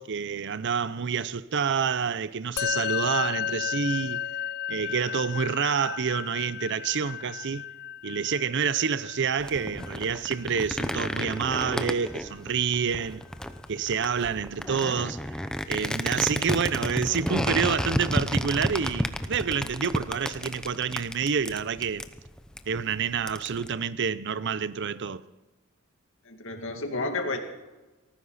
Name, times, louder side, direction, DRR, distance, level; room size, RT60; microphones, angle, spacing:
voice 1, 0.0-4.2 4.7-7.6 8.0-13.2 13.7-22.0 22.7-25.2, right 6 dB, 60° right, 0.6 m, -28 dB
Musical instrument, 2.6-12.1, left 9 dB, 50° left, 0.4 m, -34 dB
sound 1, 9.4-23.7, equal, 5° left, 0.8 m, -31 dB
voice 2, 26.3-27.4, left 2 dB, 65° left, 2.3 m, -31 dB
18.5 x 14.5 x 4.1 m
head